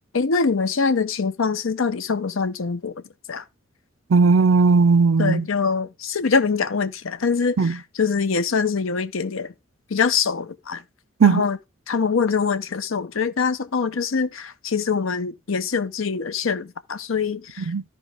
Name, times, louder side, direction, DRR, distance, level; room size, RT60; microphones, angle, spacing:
voice 1, 0.1-2.9 3.3-3.4 5.2-9.5 9.9-10.8 11.2-11.6 11.9-17.7, left 5 dB, 75° left, 0.7 m, -24 dB
voice 2, 4.1-5.4 7.6-7.8 11.2-11.5 17.6-17.8, right 4 dB, 75° right, 0.5 m, -17 dB
13.5 x 4.8 x 3.4 m
head